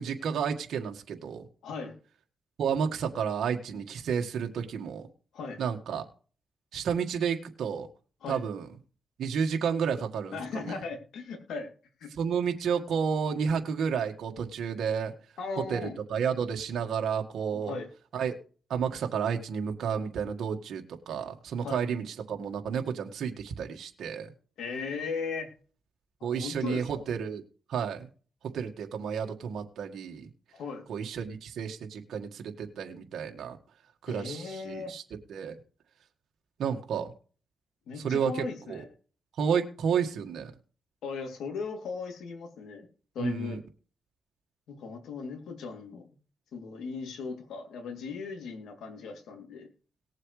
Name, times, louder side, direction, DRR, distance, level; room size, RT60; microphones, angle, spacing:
voice 1, 0.0-1.5 2.6-5.1 5.6-6.0 6.7-7.9 8.3-8.7 9.2-10.8 12.1-15.1 15.6-17.8 18.1-18.3 18.7-24.3 26.2-27.4 27.7-28.1 28.4-30.3 30.9-33.6 34.0-35.0 35.3-35.5 36.6-37.1 38.0-38.8 39.4-40.5 43.2-43.6, right 7 dB, 80° right, 3 dB, 1.7 m, -31 dB
voice 2, 1.6-2.0 5.3-5.6 8.2-8.4 10.3-11.7 12.0-12.1 15.4-16.0 17.5-17.9 21.6-21.8 24.6-25.5 26.2-26.8 30.5-30.8 34.1-34.9 37.9-38.9 41.0-42.9 43.1-43.6 44.7-46.1 46.5-49.7, left 5 dB, 85° left, 3 dB, 2.9 m, -37 dB
19.0 x 7.6 x 3.3 m, 0.39 s
cardioid pair, 75°, 0 cm